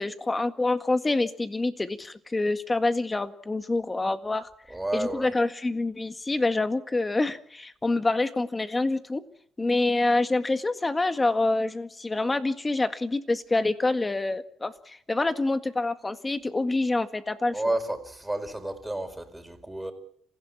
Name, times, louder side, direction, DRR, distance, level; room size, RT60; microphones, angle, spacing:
voice 1, 0.0-4.5 4.9-9.2 9.6-17.8, left 2 dB, 20° left, 9 dB, 1.8 m, -26 dB
voice 2, 4.7-5.3 17.5-19.9, right 1 dB, 10° right, 7 dB, 4.8 m, -31 dB
27.0 x 16.0 x 7.3 m, 0.65 s
cardioid pair, 90°, 0 cm